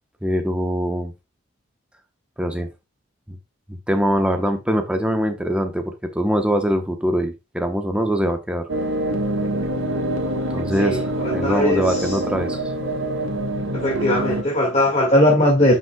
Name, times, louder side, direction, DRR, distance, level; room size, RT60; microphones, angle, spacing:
voice 1, 0.2-1.1 2.4-2.7 3.3-3.4 3.7-8.6 10.5-12.7, equal, 5° right, 1.0 m, -23 dB
sound 1, 8.7-14.4, right 1 dB, 80° right, 1.6 m, -25 dB
voice 2, 10.8-12.2 13.7-15.7, left 1 dB, 30° left, 2.0 m, -19 dB
9.7 x 5.5 x 2.3 m
head